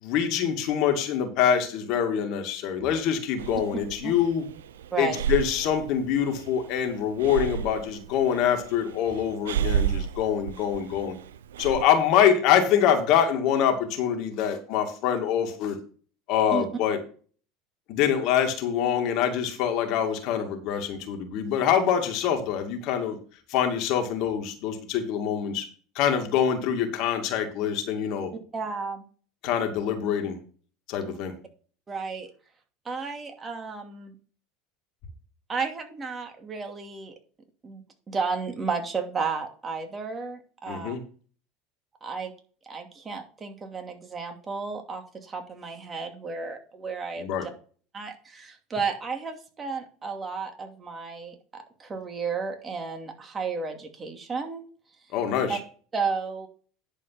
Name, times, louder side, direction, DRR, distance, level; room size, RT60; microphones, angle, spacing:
voice 1, 0.0-4.4 5.0-11.2 11.6-15.8 16.3-17.0 17.9-23.2 23.5-25.7 26.0-28.3 29.4-30.4 30.9-31.3 40.7-41.0 47.2-47.5 55.1-55.6, left 8 dB, 60° left, 4 dB, 2.3 m, -25 dB
Breathing, 3.4-11.9, right 9 dB, 85° right, 0.6 m, -32 dB
voice 2, 4.9-5.2 16.5-16.6 28.5-29.0 31.0-31.2 31.9-32.3 32.8-34.1 35.5-37.1 37.6-40.9 42.0-42.3 42.7-47.5 47.9-54.6 55.5-55.6 55.9-56.5, right 5 dB, 25° right, 4 dB, 2.5 m, -33 dB
10.5 x 4.9 x 5.8 m, 0.41 s
hypercardioid pair, 90°, 0 cm